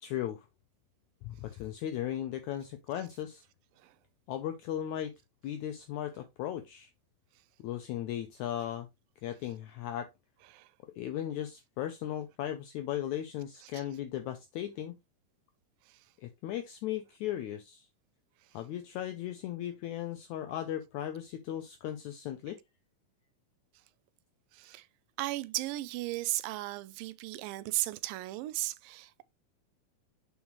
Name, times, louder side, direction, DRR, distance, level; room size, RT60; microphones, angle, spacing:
voice 1, 0.0-0.4 1.2-3.4 4.3-5.1 5.4-6.9 7.6-8.9 9.2-10.1 11.0-15.0 16.2-17.9 18.5-22.6, left 11 dB, 85° left, 1.7 m, -37 dB
voice 2, 24.5-24.9 25.2-29.2, right 18 dB, 85° right, 2.2 m, -36 dB
7.2 x 4.9 x 3.0 m
omnidirectional pair, 4.1 m